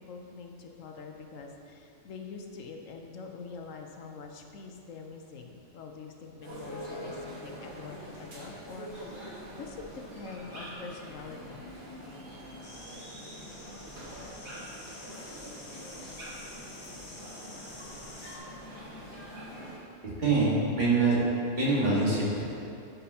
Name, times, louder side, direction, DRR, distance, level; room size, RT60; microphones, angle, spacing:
voice 1, 0.0-9.3 9.6-11.6, left 4 dB, 70° left, 3 dB, 1.0 m, -45 dB
sound 1, 6.4-19.8, equal, 80° right, 2.1 m, -44 dB
sound 2, 6.7-11.2, left 1 dB, 55° right, 2.1 m, -50 dB
sound 3, 12.6-18.4, left 2 dB, 50° left, 1.2 m, -49 dB
voice 2, 20.0-21.2 21.5-22.4, right 3 dB, 35° right, -8 dB, 2.0 m, -25 dB
12.0 x 5.5 x 2.8 m, 2.7 s
omnidirectional pair, 1.4 m